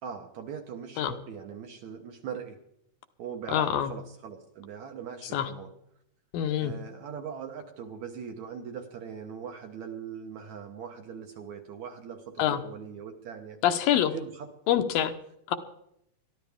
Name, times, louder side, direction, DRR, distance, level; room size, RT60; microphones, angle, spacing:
voice 1, 0.0-2.6 3.2-5.7 6.6-13.6 14.1-14.5, right 7 dB, 65° right, 4 dB, 2.0 m, -41 dB
voice 2, 3.5-3.9 5.3-5.5 6.3-6.7 12.4-12.6 13.6-14.1 14.7-15.1 15.5-15.6, left 10 dB, 75° left, 8 dB, 2.7 m, -25 dB
22.0 x 14.0 x 3.6 m, 0.76 s
omnidirectional pair, 4.3 m